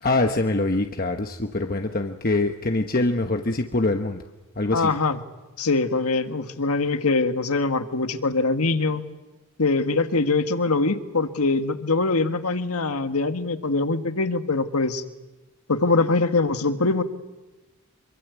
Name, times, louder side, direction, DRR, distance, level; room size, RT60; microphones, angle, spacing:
voice 1, 0.0-4.2 4.6-4.9, left 2 dB, 40° left, 4 dB, 1.2 m, -24 dB
voice 2, 4.7-5.2 5.6-9.0 9.6-15.0 15.7-17.0, left 3 dB, 80° left, 8 dB, 1.7 m, -23 dB
26.5 x 24.0 x 8.3 m, 1.1 s
head